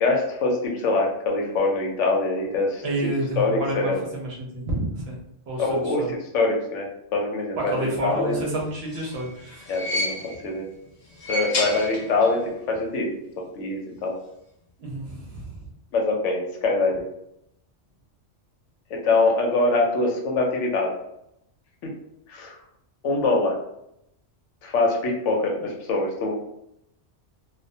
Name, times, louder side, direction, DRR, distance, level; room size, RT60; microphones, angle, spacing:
voice 1, 0.0-2.8 3.4-4.0 5.6-6.0 6.3-8.4 9.7-10.1 10.4-10.7 11.3-13.1 13.6-14.1 15.9-17.0 19.0-20.9 21.8-21.9 22.3-22.6 23.0-23.6 24.6-26.3, left 3 dB, 75° left, 0 dB, 0.9 m, -23 dB
voice 2, 2.8-5.1 5.5-6.1 7.6-9.8 14.8-15.5, right 1 dB, 65° right, -1 dB, 0.9 m, -29 dB
sound 1, 8.6-10.6 11.0-12.5 12.7-12.8 13.9-14.0, left 1 dB, 50° left, 0.6 m, -31 dB
2.3 x 2.1 x 2.6 m, 0.78 s
omnidirectional pair, 1.3 m